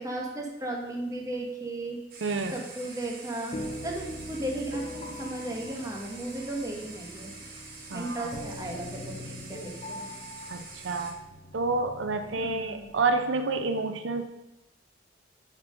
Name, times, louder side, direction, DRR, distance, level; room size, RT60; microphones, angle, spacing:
voice 1, 0.0-2.0 2.5-3.6 3.8-7.3 7.9-10.1 12.3-12.9, right 1 dB, 20° right, -1 dB, 1.6 m, -35 dB
sound 1, 2.1-11.1, right 3 dB, 55° right, 1.6 m, -46 dB
voice 2, 2.2-2.6 7.9-8.3 10.5-11.2 11.5-14.2, right 3 dB, 85° right, 8 dB, 0.6 m, -29 dB
sound 2, 3.5-13.1, left 1 dB, 35° left, 0.9 m, -42 dB
8.9 x 5.7 x 5.3 m, 0.96 s
head